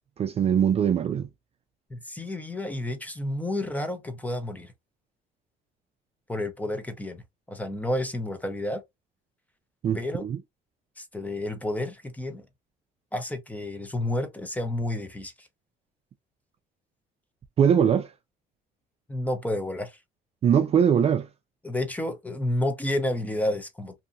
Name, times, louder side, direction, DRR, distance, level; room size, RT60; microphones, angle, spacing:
voice 1, 0.2-1.3 9.8-10.4 17.6-18.1 20.4-21.3, right 8 dB, 35° right, 0.4 m, -22 dB
voice 2, 1.9-4.7 6.3-7.2 7.5-8.8 9.9-10.2 11.0-12.4 13.1-15.5 19.1-20.0 21.6-23.9, left 1 dB, 10° left, 0.6 m, -30 dB
2.7 x 2.5 x 2.5 m
cardioid pair, 110°, 17 cm